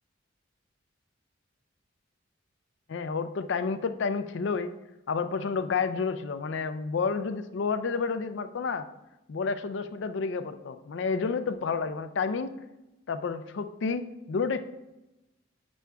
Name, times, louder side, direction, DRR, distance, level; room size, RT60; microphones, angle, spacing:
voice 1, 2.9-4.7 5.1-8.9 9.3-12.6 13.1-14.6, left 5 dB, 65° left, 10 dB, 0.4 m, -30 dB
8.1 x 6.2 x 2.3 m, 0.98 s
head